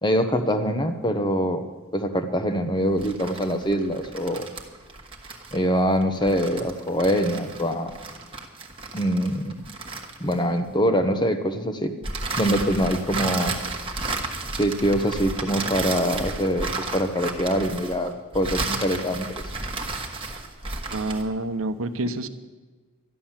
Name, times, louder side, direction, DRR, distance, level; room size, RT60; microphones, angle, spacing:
voice 1, 0.0-1.6 1.9-4.5 5.5-7.9 8.9-9.6 10.2-11.9 12.4-13.5 14.5-19.3, equal, 20° left, 8 dB, 0.9 m, -24 dB
sound 1, 2.9-10.7 12.0-21.3, right 3 dB, 25° right, 1.4 m, -33 dB
voice 2, 20.9-22.3, right 2 dB, 75° right, 10 dB, 0.9 m, -28 dB
13.0 x 11.0 x 7.3 m, 1.3 s
head